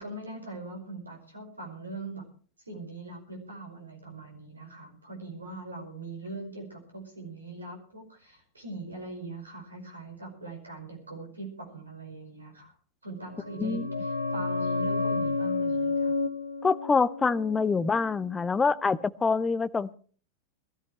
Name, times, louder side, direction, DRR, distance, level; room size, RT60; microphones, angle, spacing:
voice 1, 0.0-2.2 2.6-12.7 13.0-16.2, right 2 dB, 80° right, 5.1 m, -41 dB
sound 1, 13.2-18.6 18.9-19.0, left 3 dB, 85° left, 1.4 m, -31 dB
voice 2, 16.6-19.9, left 4 dB, 15° left, 0.6 m, -26 dB
21.5 x 13.5 x 3.2 m
figure-of-eight pair, 90°, 0 cm